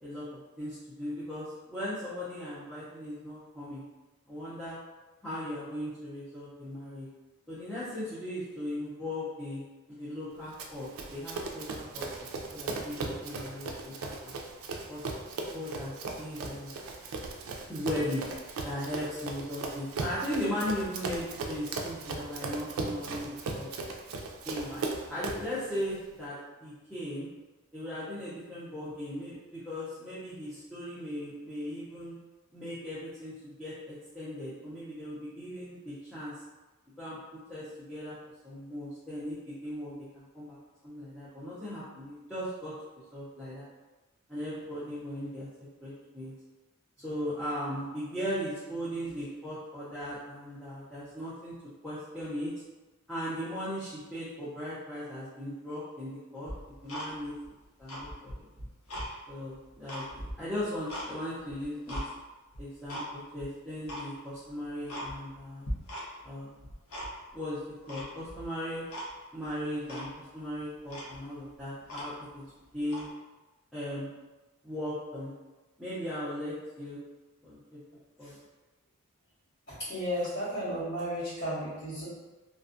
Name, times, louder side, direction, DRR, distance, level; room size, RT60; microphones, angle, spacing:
voice 1, 0.0-3.8 4.3-4.8 5.2-7.1 7.5-9.6 9.9-12.1 12.5-14.4 14.9-15.0 15.5-16.7 17.7-18.2 18.6-23.7 24.4-26.3 26.6-27.3 27.7-32.2 32.5-36.3 37.0-38.2 38.4-40.6 40.8-42.7 43.1-43.7 44.3-45.5 45.8-46.3 47.0-51.5 51.8-52.5 53.1-57.3 57.8-58.5 59.3-62.0 62.6-65.7 66.2-66.5 67.3-67.6 67.9-68.8 69.3-72.4 72.7-73.0 73.7-74.1 74.6-75.3 75.8-77.0 77.4-77.8 78.2-78.4, equal, ahead, -13 dB, 0.5 m, -38 dB
Run, 10.6-25.5, right 3 dB, 70° right, 0.3 m, -38 dB
Tick-tock, 56.5-57.5 57.8-59.1 59.5-61.1 61.5-62.1 62.5-63.1 63.4-63.5 63.8-64.1 64.5-64.6 64.9-65.4 65.6-66.3 66.6-67.4 67.9-68.5 68.9-69.1 69.4-69.5 69.9-70.1 70.6-70.7 70.9-72.4 72.8-73.1, equal, 75° left, 0.7 m, -39 dB
voice 2, 79.8-82.0, equal, 50° left, -16 dB, 1.3 m, -33 dB
2.5 x 2.2 x 2.5 m, 1.2 s
head